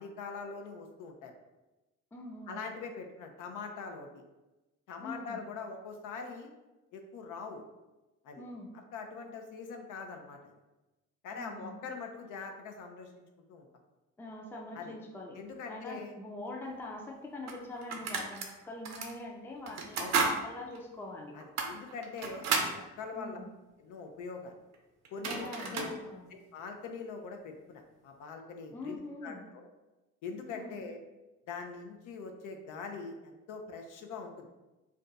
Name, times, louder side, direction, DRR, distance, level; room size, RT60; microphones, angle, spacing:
voice 1, 0.0-1.3 2.5-4.2 4.9-6.5 6.9-7.6 8.2-8.4 8.9-10.5 11.2-13.2 13.5-13.7 14.7-15.0 15.3-16.1 20.0-20.2 21.3-23.4 23.8-24.5 25.1-26.0 26.3-29.7 30.2-31.0 31.5-34.5, left 4 dB, 80° left, 4 dB, 0.6 m, -43 dB
voice 2, 2.1-2.6 5.0-5.4 8.4-8.7 11.3-11.8 14.2-15.4 15.7-21.4 23.1-23.5 25.3-26.3 28.7-29.5 30.5-30.8, left 2 dB, 5° left, 0 dB, 0.4 m, -43 dB
sound 1, 16.7-16.8 17.5-18.5 18.8-19.1 19.7-20.4 20.7-20.8 21.4-22.8 24.7-24.8 25.0-25.9, right 4 dB, 65° right, 0.6 m, -32 dB
2.5 x 2.2 x 3.9 m, 1.1 s
cardioid pair, 90°, 30 cm